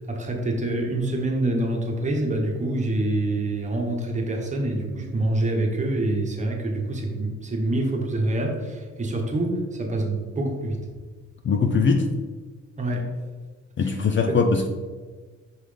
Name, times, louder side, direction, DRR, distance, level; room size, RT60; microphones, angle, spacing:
voice 1, 0.1-10.8 12.8-13.1 14.3-14.4, right 2 dB, 25° right, 1 dB, 1.1 m, -26 dB
voice 2, 11.4-12.1 13.8-14.7, left 4 dB, 40° left, 6 dB, 0.5 m, -21 dB
6.3 x 3.9 x 5.0 m, 1.4 s
cardioid pair, 155°, 31 cm